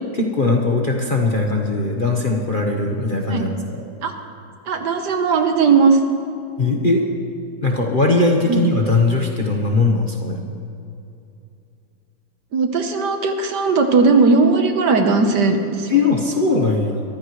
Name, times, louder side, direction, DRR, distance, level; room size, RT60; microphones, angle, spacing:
voice 1, 0.2-3.8 6.6-7.0 7.6-10.4 15.9-17.0, left 3 dB, 35° left, 0 dB, 1.0 m, -19 dB
voice 2, 4.7-6.0 8.5-8.7 12.5-15.9, right 4 dB, 65° right, 5 dB, 1.6 m, -17 dB
22.5 x 14.5 x 3.1 m, 2.6 s
omnidirectional pair, 2.1 m